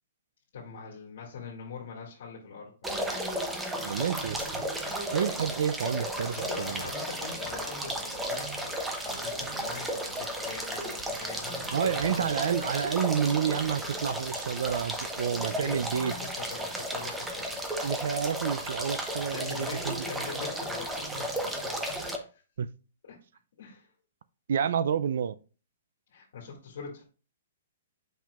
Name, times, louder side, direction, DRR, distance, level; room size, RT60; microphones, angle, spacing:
voice 1, 0.5-3.0 3.8-4.1 6.2-12.5 15.5-17.6 19.2-22.4 23.0-23.2 23.6-23.9 26.1-27.0, left 5 dB, 60° left, 1.9 m, -43 dB
sound 1, 2.8-22.2, right 1 dB, 5° right, 0.6 m, -34 dB
voice 2, 3.8-4.6 5.1-6.8 11.6-16.1 17.8-20.1 22.6-22.7 24.5-25.4, right 8 dB, 60° right, 0.3 m, -29 dB
7.4 x 5.5 x 2.4 m
hypercardioid pair, 165°, 0 cm